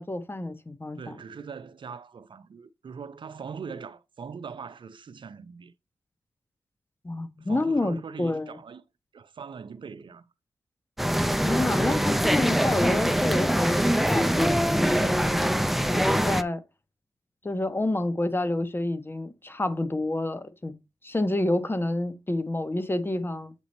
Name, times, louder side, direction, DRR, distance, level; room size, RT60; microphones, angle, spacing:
voice 1, 0.0-1.2 7.0-8.6 11.4-15.6 15.9-16.6 17.4-20.7 21.0-23.5, left 2 dB, 25° left, 1.1 m, -28 dB
voice 2, 1.0-5.7 7.4-8.8 9.1-10.2, right 6 dB, 65° right, 0.6 m, -41 dB
sound 1, 11.0-16.4, equal, ahead, 0.5 m, -23 dB
8.0 x 2.9 x 5.2 m
cardioid pair, 45°, 9 cm